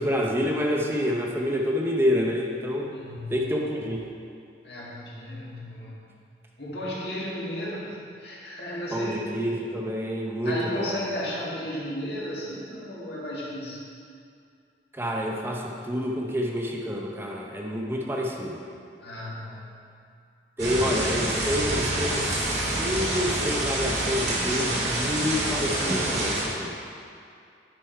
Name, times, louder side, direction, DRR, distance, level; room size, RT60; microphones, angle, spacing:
voice 1, 0.0-2.9 3.3-4.0 8.9-11.0 14.9-18.6 20.6-26.8, equal, 15° right, -1 dB, 0.6 m, -28 dB
voice 2, 2.9-3.5 4.6-6.0 6.6-9.3 10.4-13.8 19.0-19.7, left 1 dB, 65° left, -6 dB, 1.8 m, -34 dB
sound 1, 20.6-26.4, right 1 dB, 75° right, 2.0 m, -27 dB
9.9 x 4.7 x 4.5 m, 2.4 s
head